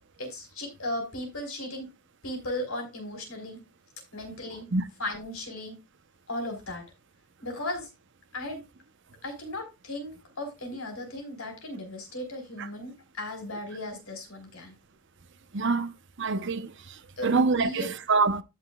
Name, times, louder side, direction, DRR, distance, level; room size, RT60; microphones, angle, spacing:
voice 1, 0.2-1.9 2.2-3.6 4.1-4.7 5.0-5.8 6.3-6.8 7.4-7.9 8.3-8.6 9.2-14.7 17.2-17.9, left 1 dB, 70° left, 4.3 m, -36 dB
voice 2, 15.5-15.9 16.2-16.7 17.2-18.4, right 4 dB, 55° right, 0.8 m, -25 dB
14.5 x 5.9 x 2.3 m
head